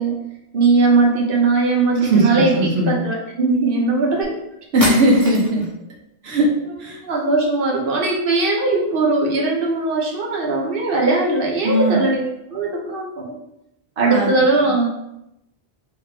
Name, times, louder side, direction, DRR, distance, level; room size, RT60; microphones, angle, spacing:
voice 1, 0.0-4.4 7.0-13.4 14.0-14.9, right 3 dB, 65° right, 0 dB, 0.9 m, -19 dB
voice 2, 2.0-2.9 4.7-5.7 6.2-7.0 11.6-12.0 14.1-14.3, right 1 dB, 90° right, -1 dB, 1.0 m, -18 dB
sound 1, 4.2-4.3 4.8-5.7, right 1 dB, 25° right, 0.6 m, -26 dB
3.4 x 2.8 x 3.2 m, 0.83 s
omnidirectional pair, 1.0 m